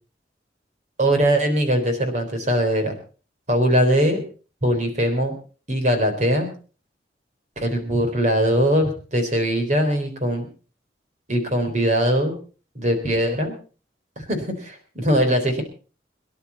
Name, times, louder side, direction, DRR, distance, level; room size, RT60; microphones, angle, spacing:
voice 1, 1.0-2.9 3.5-4.2 4.6-5.3 5.7-6.5 7.6-10.5 11.3-12.3 12.8-13.6 14.2-15.6, equal, 40° right, 6 dB, 3.9 m, -21 dB
23.5 x 11.0 x 4.1 m, 0.37 s
head